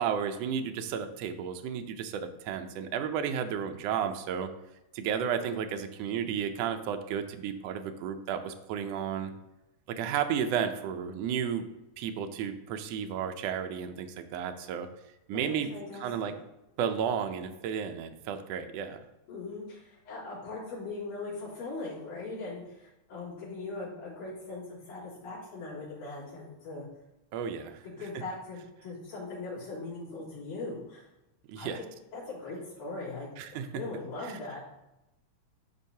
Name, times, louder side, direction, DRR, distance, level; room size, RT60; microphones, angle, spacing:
voice 1, 0.0-4.5 4.9-9.3 9.9-11.7 12.0-14.9 15.3-15.7 16.0-16.3 16.8-19.0 27.3-27.8 31.5-31.8 33.4-33.8 34.2-34.4, right 8 dB, 80° right, 7 dB, 1.5 m, -33 dB
voice 2, 15.3-16.3 19.3-26.9 27.8-31.1 31.6-31.8 32.1-33.3 33.7-34.6, left 3 dB, 80° left, -8 dB, 4.5 m, -40 dB
12.0 x 4.5 x 2.8 m, 0.91 s
omnidirectional pair, 3.5 m